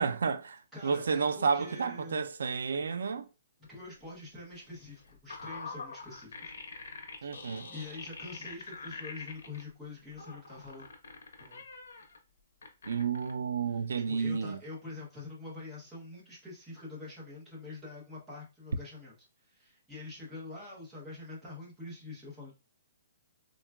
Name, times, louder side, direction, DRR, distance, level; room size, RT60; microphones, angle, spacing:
voice 1, 0.0-3.3 7.2-7.7 12.9-14.6, right 5 dB, 80° right, 0.4 m, -31 dB
voice 2, 0.7-2.3 3.7-6.5 7.2-7.3 7.7-10.9 11.4-11.6 14.1-19.2 19.4-22.5, left 3 dB, 5° right, 0.7 m, -45 dB
sound 1, 4.5-9.6 10.1-12.2 12.6-13.3, left 4 dB, 75° left, 0.8 m, -45 dB
3.7 x 2.2 x 2.2 m
hypercardioid pair, 180°, 0 cm